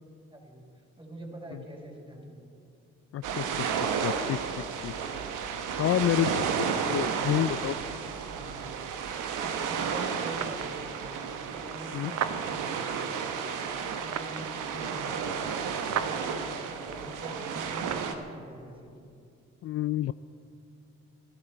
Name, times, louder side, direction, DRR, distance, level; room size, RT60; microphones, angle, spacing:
voice 1, 0.3-2.5 8.3-8.7 9.4-11.2 11.5-13.1 13.4-15.6 15.8-19.0, right 1 dB, 15° right, 1 dB, 4.4 m, -44 dB
voice 2, 3.1-3.5 4.0-4.4 4.8-4.9 5.8-7.8 11.9-12.1 19.6-20.1, left 12 dB, 50° left, 14 dB, 0.4 m, -28 dB
sound 1, 3.2-18.1, right 6 dB, 70° right, 1.2 m, -32 dB
sound 2, 9.1-18.1, right 8 dB, 55° right, 0.9 m, -40 dB
25.5 x 12.0 x 4.5 m, 2.5 s
hypercardioid pair, 50°, 32 cm